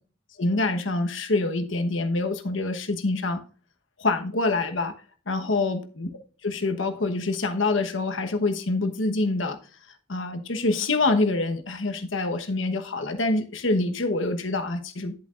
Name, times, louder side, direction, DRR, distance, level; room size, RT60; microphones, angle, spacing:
voice 1, 0.4-3.4 4.0-4.9 5.3-6.1 6.4-9.6 10.1-15.1, left 2 dB, 75° left, 1.1 m, -26 dB
10.5 x 7.7 x 2.5 m
head